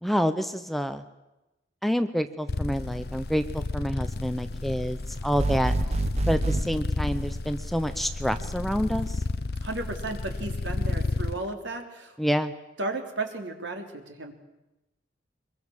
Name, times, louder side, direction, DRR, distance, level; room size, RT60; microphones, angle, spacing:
voice 1, 0.0-1.0 1.8-5.7 6.3-9.2 12.2-12.5, equal, ahead, 9 dB, 0.8 m, -28 dB
sound 1, 2.5-11.4, left 2 dB, 55° left, 0.7 m, -32 dB
sound 2, 5.4-6.7, right 2 dB, 35° right, 1.0 m, -26 dB
voice 2, 9.6-12.2 12.8-14.3, right 2 dB, 85° right, 3 dB, 3.5 m, -34 dB
24.5 x 22.0 x 7.3 m, 1.0 s
head